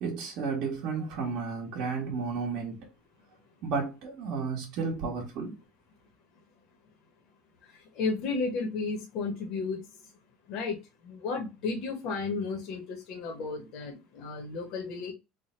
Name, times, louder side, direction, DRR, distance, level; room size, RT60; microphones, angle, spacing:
voice 1, 0.0-2.9 3.6-5.5, right 5 dB, 55° right, 1.1 m, -32 dB
voice 2, 8.0-9.8 10.5-10.8 11.1-15.1, left 4 dB, 55° left, 0.9 m, -33 dB
3.4 x 2.2 x 4.2 m
cardioid pair, 150°, 0 cm